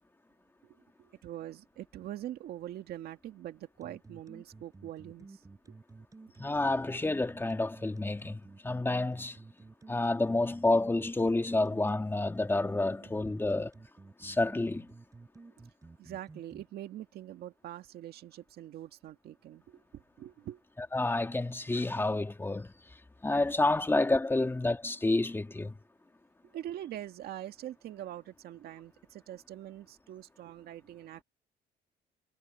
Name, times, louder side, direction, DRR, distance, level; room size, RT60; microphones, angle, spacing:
voice 1, 0.6-5.4 16.0-20.6 26.5-31.2, right 12 dB, 70° right, 1.8 m, -44 dB
sound 1, 3.8-16.6, right 3 dB, 20° right, 7.9 m, -52 dB
voice 2, 6.4-9.4 9.9-13.7 14.2-14.9 20.9-22.7 23.2-25.7, left 2 dB, 15° left, 1.8 m, -29 dB
cardioid pair, 110°, 17 cm